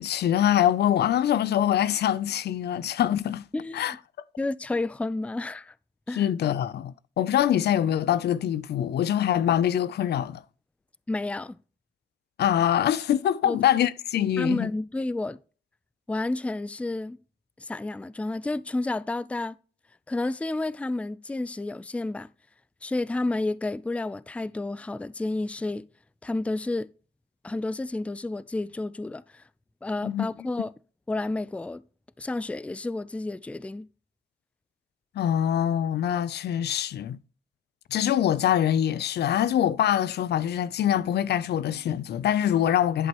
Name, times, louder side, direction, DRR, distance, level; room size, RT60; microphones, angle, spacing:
voice 1, 0.0-3.4 3.7-3.9 6.1-10.4 12.4-14.7 30.0-30.3 35.2-37.2 37.9-43.1, left 10 dB, 75° left, 0.5 m, -24 dB
voice 2, 4.4-5.7 6.1-6.3 11.1-11.6 13.4-13.6 14.4-15.4 16.1-17.2 17.6-19.6 20.1-22.3 22.8-25.9 26.2-26.9 27.4-29.4 29.8-30.7 31.1-31.8 32.2-33.9, left 2 dB, 5° left, 0.4 m, -30 dB
11.0 x 5.2 x 3.0 m
cardioid pair, 65°, 17 cm